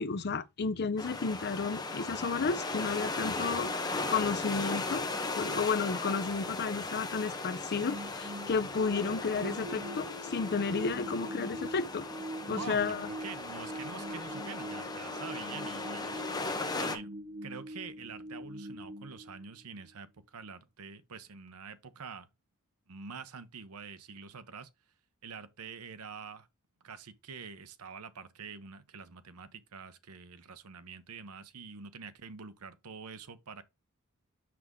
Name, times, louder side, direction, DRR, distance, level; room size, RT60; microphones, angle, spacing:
voice 1, 0.0-3.7 4.1-5.1 5.4-12.1 12.5-13.0, left 5 dB, 50° left, 0.6 m, -32 dB
sound 1, 1.0-17.0, left 3 dB, 20° left, 1.1 m, -37 dB
sound 2, 7.7-19.9, equal, 40° right, 0.9 m, -44 dB
voice 2, 12.5-16.5 16.8-17.1 17.4-22.3 22.9-24.7 25.2-26.5 26.8-33.6, right 5 dB, 75° right, 0.8 m, -46 dB
6.0 x 6.0 x 3.6 m
head